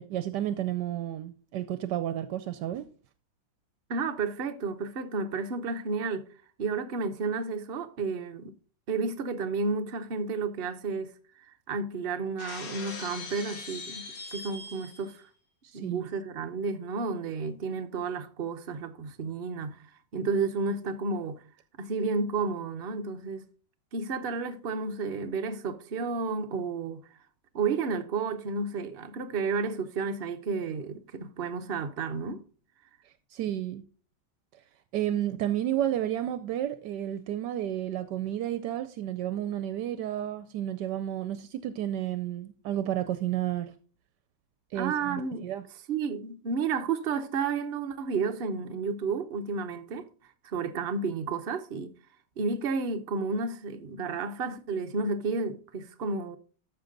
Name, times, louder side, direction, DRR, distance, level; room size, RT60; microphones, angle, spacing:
voice 1, 0.0-2.9 15.6-16.1 33.3-33.8 34.9-43.7 44.7-45.6, right 12 dB, 75° right, 1.2 m, -31 dB
voice 2, 3.9-6.3 6.6-8.5 8.9-11.1 11.5-15.2 15.7-19.8 20.1-21.4 21.8-23.4 23.9-27.1 27.5-32.4 44.8-45.5 45.9-51.9 52.4-56.4, right 4 dB, 45° right, 0.9 m, -32 dB
Shatter, 12.4-15.1, left 3 dB, 75° left, 2.4 m, -41 dB
13.0 x 5.9 x 3.8 m
omnidirectional pair, 1.9 m